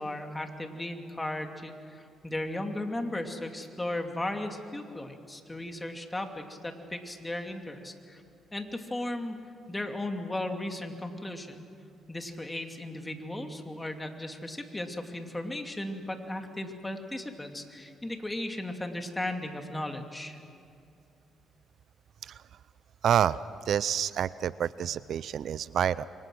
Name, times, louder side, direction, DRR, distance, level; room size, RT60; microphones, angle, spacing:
voice 1, 0.0-8.2 8.5-9.4 9.7-11.6 12.1-20.4, left 1 dB, 15° left, 4 dB, 2.7 m, -36 dB
voice 2, 23.0-23.4 23.7-26.1, right 9 dB, 65° right, 17 dB, 0.5 m, -28 dB
28.5 x 24.5 x 6.3 m, 2.5 s
cardioid pair, 90°, 0 cm